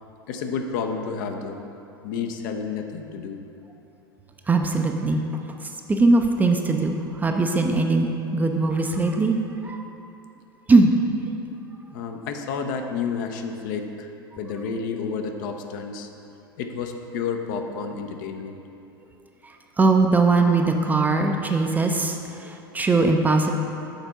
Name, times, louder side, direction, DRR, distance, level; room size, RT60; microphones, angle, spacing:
voice 1, 0.3-1.6 2.0-3.4 11.9-14.1 14.3-16.1 16.6-18.6, left 5 dB, 50° left, 4 dB, 0.6 m, -30 dB
voice 2, 4.5-5.2 5.6-9.8 10.7-10.9 19.4-23.5, right 3 dB, 15° right, 3 dB, 0.5 m, -21 dB
6.5 x 4.4 x 6.2 m, 2.8 s
figure-of-eight pair, 85°, 13 cm